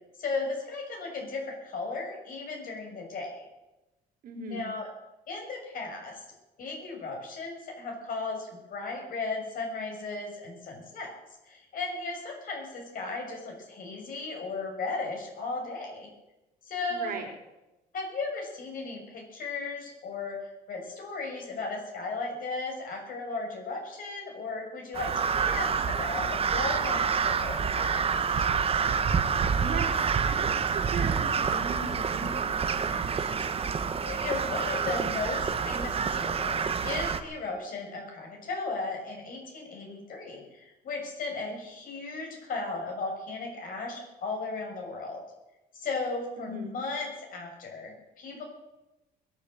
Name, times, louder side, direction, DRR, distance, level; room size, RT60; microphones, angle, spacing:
voice 1, 0.2-3.5 4.5-4.9 5.3-6.2 6.6-11.2 11.4-16.1 16.6-17.1 17.9-20.4 20.7-28.0 28.3-28.4 34.0-45.2 45.7-48.4, left 3 dB, 55° left, 0 dB, 6.5 m, -36 dB
voice 2, 4.2-4.7 16.9-17.3 29.6-33.4 46.4-46.8, right 3 dB, 60° right, 1 dB, 4.2 m, -38 dB
Crow, 24.9-37.2, right 6 dB, 35° right, 1.3 m, -28 dB
21.0 x 7.9 x 7.8 m, 1.0 s
cardioid pair, 110°, 17 cm